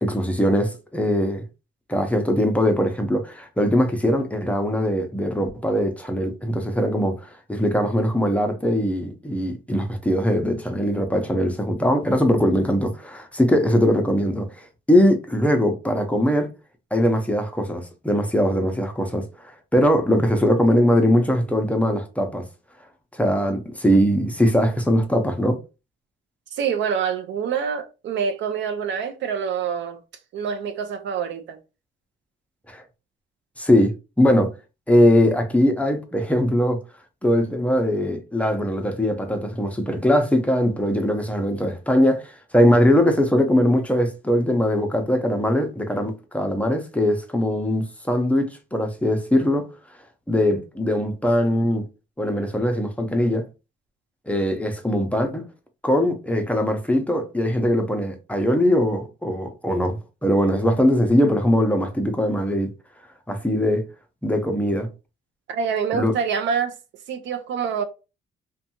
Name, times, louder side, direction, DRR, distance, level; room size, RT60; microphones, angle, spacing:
voice 1, 0.0-1.4 1.9-16.5 16.9-22.4 23.1-25.6 32.7-32.8 33.6-34.5 34.9-36.8 37.2-49.7 50.3-51.9 52.2-53.4 54.3-55.4 55.8-62.7 63.3-63.8 64.2-64.9 65.9-66.1, equal, 5° left, 0.6 m, -21 dB
voice 2, 26.5-30.0 30.3-31.6 65.5-66.7 67.1-67.8, right 7 dB, 65° right, 0.5 m, -26 dB
2.6 x 2.2 x 2.8 m
cardioid pair, 90°, 20 cm